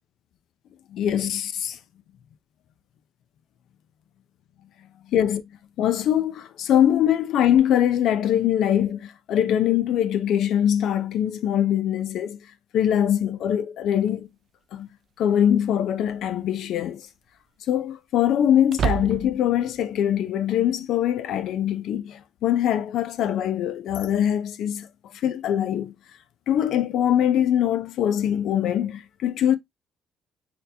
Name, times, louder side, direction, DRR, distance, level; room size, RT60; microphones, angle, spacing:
voice 1, 0.9-1.8 5.1-5.4 5.8-12.4 12.7-14.3 14.7-14.9 15.2-17.0 17.7-24.9 25.2-25.9 26.5-29.5, left 10 dB, 75° left, 0.5 m, -22 dB
sound 1, 14.1-14.2 16.0-16.4 16.8-16.9 18.7-19.6, right 8 dB, 55° right, 0.4 m, -28 dB
4.2 x 2.8 x 2.6 m
supercardioid pair, 75°, 0 cm